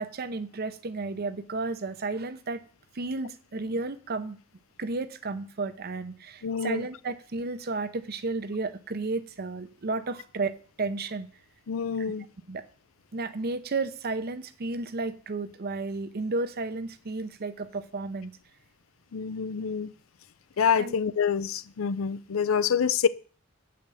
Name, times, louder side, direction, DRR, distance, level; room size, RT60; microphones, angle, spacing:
voice 1, 0.0-2.6 2.9-4.4 4.8-11.3 12.5-12.6 13.1-18.3 20.8-20.9, right 3 dB, 50° right, 0.7 m, -32 dB
voice 2, 6.4-6.9 11.7-12.2 19.1-19.9 20.6-23.1, left 6 dB, 80° left, 0.5 m, -26 dB
7.7 x 5.1 x 6.9 m
head